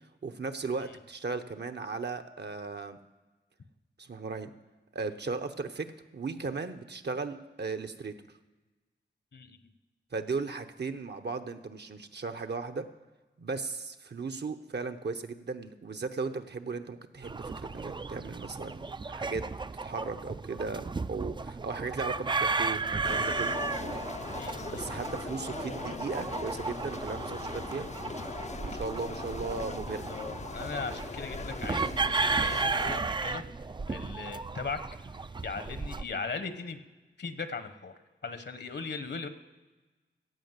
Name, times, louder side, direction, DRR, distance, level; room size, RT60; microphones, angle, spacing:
voice 1, 0.2-3.0 4.0-4.5 4.9-8.1 10.1-12.9 13.4-19.4 19.8-23.6 24.6-27.9 28.6-30.0, right 4 dB, 60° right, 7 dB, 1.0 m, -36 dB
voice 2, 9.3-9.7 24.4-24.8 29.9-33.4 33.9-34.8 35.4-36.8 37.2-37.9 38.2-39.3, left 4 dB, 65° left, 10 dB, 1.1 m, -38 dB
sound 1, 17.2-36.0, right 4 dB, 25° right, 0.4 m, -34 dB
sound 2, 23.0-33.0, left 4 dB, 35° left, 0.5 m, -40 dB
15.5 x 5.3 x 8.1 m, 1.2 s
cardioid pair, 60°, 19 cm